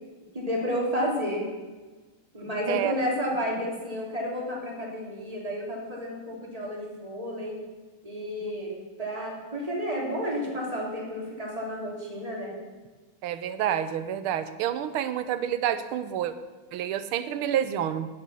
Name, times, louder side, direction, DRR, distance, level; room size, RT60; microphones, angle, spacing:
voice 1, 0.3-1.5 2.3-7.6 8.0-12.6, equal, 15° right, -3 dB, 3.0 m, -31 dB
voice 2, 13.2-16.3 16.7-18.1, right 10 dB, 80° right, 12 dB, 1.6 m, -28 dB
10.5 x 9.8 x 6.9 m, 1.3 s
omnidirectional pair, 2.4 m